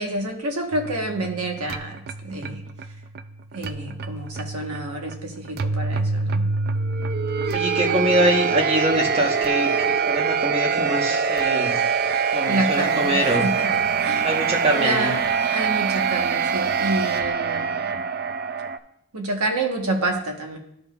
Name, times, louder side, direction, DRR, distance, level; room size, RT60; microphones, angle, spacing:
voice 1, 0.0-2.0 2.2-2.6 3.5-6.4 12.4-13.7 14.0-14.3 14.7-15.2 15.5-18.0 19.1-20.6, right 2 dB, 85° right, 3 dB, 1.2 m, -28 dB
sound 1, 0.7-18.8, right 5 dB, 45° right, 0.3 m, -24 dB
voice 2, 7.5-11.8 12.3-13.4 14.2-15.1, right 1 dB, 25° right, 0 dB, 1.1 m, -24 dB
12.5 x 5.2 x 2.4 m, 0.77 s
head